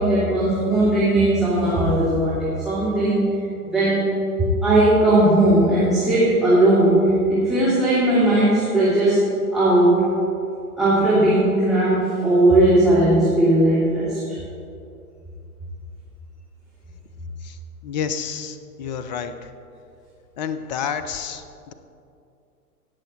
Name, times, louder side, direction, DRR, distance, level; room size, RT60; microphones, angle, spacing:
voice 1, 0.0-3.4 3.7-4.1 4.4-9.2 9.5-10.1 10.8-14.2, right 1 dB, ahead, -11 dB, 2.6 m, -18 dB
voice 2, 17.8-19.3 20.4-21.7, left 7 dB, 30° left, 10 dB, 0.5 m, -29 dB
17.5 x 6.8 x 4.4 m, 2.5 s
figure-of-eight pair, 115°, 46 cm